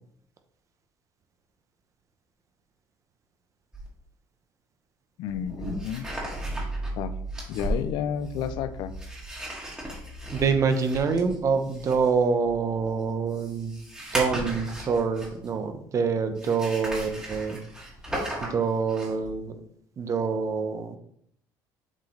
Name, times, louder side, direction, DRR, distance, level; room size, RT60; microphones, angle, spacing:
sound 1, 3.7-3.9 5.3-15.6 16.4-19.3, right 1 dB, 10° right, 2.2 m, -35 dB
voice 1, 5.2-6.1 7.0-7.1 7.5-8.9, left 9 dB, 75° left, 12 dB, 0.5 m, -31 dB
voice 2, 10.3-13.7 14.1-17.6 18.4-19.6 20.0-21.0, right 5 dB, 40° right, 7 dB, 0.9 m, -26 dB
7.4 x 3.9 x 3.3 m, 0.67 s
cardioid pair, 100°, 8 cm